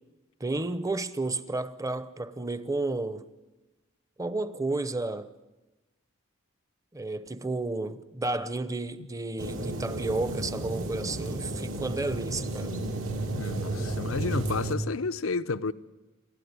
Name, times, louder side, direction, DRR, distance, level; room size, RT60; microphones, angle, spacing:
voice 1, 0.4-3.2 4.2-5.3 6.9-12.7, right 2 dB, 15° right, 0.8 m, -32 dB
sound 1, 9.4-14.7, right 1 dB, 70° right, 2.9 m, -32 dB
voice 2, 13.3-15.7, left 4 dB, 85° left, 0.7 m, -31 dB
29.0 x 13.0 x 9.7 m
head